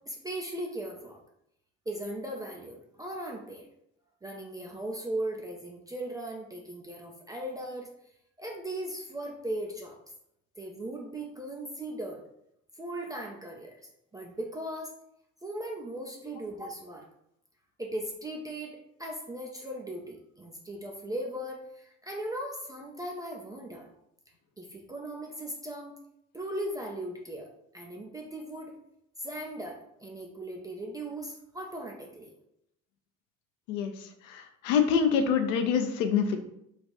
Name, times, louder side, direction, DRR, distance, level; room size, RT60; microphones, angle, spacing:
voice 1, 0.1-1.2 1.9-3.7 4.2-7.9 8.4-10.0 10.6-12.2 12.7-14.9 15.4-17.1 17.8-23.9 24.6-25.9 26.3-27.5 27.7-28.7 29.2-32.3, right 1 dB, 10° right, -1 dB, 0.3 m, -38 dB
voice 2, 33.7-36.4, left 6 dB, 65° left, 6 dB, 0.6 m, -26 dB
3.2 x 2.4 x 4.0 m, 0.78 s
figure-of-eight pair, 50°, 41 cm